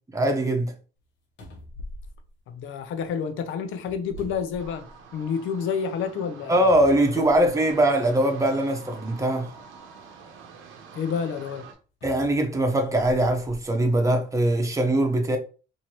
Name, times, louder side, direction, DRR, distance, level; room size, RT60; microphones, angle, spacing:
voice 1, 0.1-0.7 6.5-9.6 12.0-15.4, right 1 dB, 15° right, 0.9 m, -22 dB
sound 1, 1.0-1.1 1.4-3.1 3.8-5.2 5.6-5.7 6.7-7.8 8.7-8.8 12.0-13.7 14.3-14.5, left 1 dB, 65° left, 1.3 m, -44 dB
voice 2, 2.5-4.9 5.1-6.6 7.2-7.3 10.9-11.6, left 6 dB, 85° left, 0.7 m, -29 dB
sound 2, 4.6-11.7, right 5 dB, 90° right, 0.8 m, -46 dB
4.5 x 2.8 x 3.0 m
cardioid pair, 90°, 20 cm